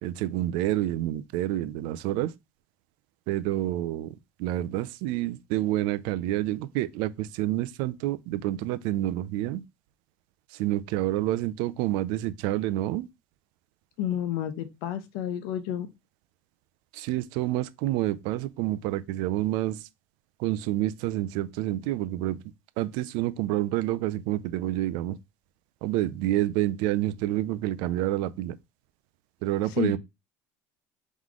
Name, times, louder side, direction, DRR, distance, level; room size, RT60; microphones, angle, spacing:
voice 1, 0.0-2.3 3.3-4.1 4.4-9.6 10.5-13.1 16.9-19.8 20.4-22.4 22.8-25.2 25.8-28.6 29.4-30.0, right 14 dB, 70° right, 0.4 m, -28 dB
voice 2, 14.0-15.9 29.6-30.0, left 10 dB, 75° left, 0.8 m, -30 dB
3.7 x 3.0 x 3.6 m
cardioid pair, 135°, 8 cm